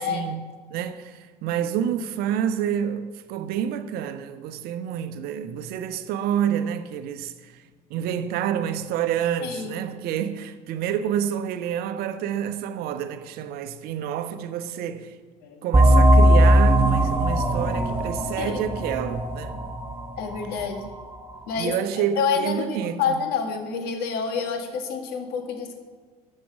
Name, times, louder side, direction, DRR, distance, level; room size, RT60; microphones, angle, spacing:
voice 1, 0.0-7.5 7.9-15.2 15.6-19.6 20.5-20.7 21.5-23.2, right 9 dB, 50° right, 0.9 m, -28 dB
voice 2, 9.4-9.7 15.4-15.6 18.4-18.6 19.6-19.7 20.2-20.8 21.5-21.7 22.2-25.8, left 6 dB, 55° left, 1.8 m, -28 dB
sound 1, 15.7-21.0, right 1 dB, 10° right, 3.5 m, -19 dB
13.0 x 8.5 x 6.2 m
figure-of-eight pair, 60°, 20 cm